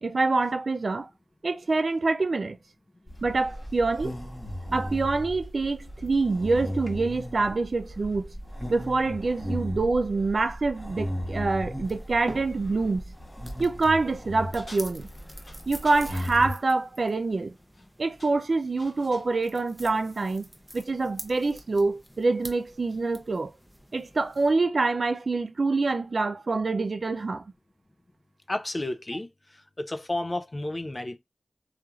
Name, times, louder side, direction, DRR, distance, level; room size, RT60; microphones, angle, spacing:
voice 1, 0.0-1.1 1.4-2.6 3.2-4.2 4.7-8.3 8.7-13.0 13.6-15.1 15.7-17.5 18.0-20.5 20.7-23.5 23.9-27.4, right 3 dB, 75° right, 0.3 m, -26 dB
sound 1, 3.1-16.5, equal, 25° left, 1.0 m, -36 dB
sound 2, 11.8-24.5, equal, ahead, 0.6 m, -47 dB
sound 3, 14.5-16.1 17.6-17.9 18.2-19.3, left 1 dB, 90° left, 1.1 m, -49 dB
voice 2, 28.5-29.3 29.8-31.2, left 1 dB, 40° left, 0.4 m, -31 dB
3.0 x 2.4 x 2.3 m
cardioid pair, 45°, 0 cm